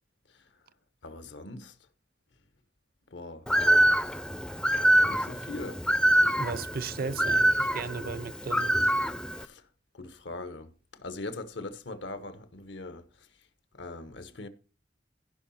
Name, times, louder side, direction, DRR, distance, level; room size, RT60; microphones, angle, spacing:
voice 1, 1.0-1.8 3.1-3.5 5.0-5.8 9.3-9.7 9.9-13.3 13.7-14.5, left 2 dB, 80° left, 1.2 m, -41 dB
Bird, 3.5-9.4, right 1 dB, 5° left, 0.4 m, -25 dB
voice 2, 6.4-8.9, right 4 dB, 55° right, 0.6 m, -36 dB
15.5 x 5.7 x 4.2 m
head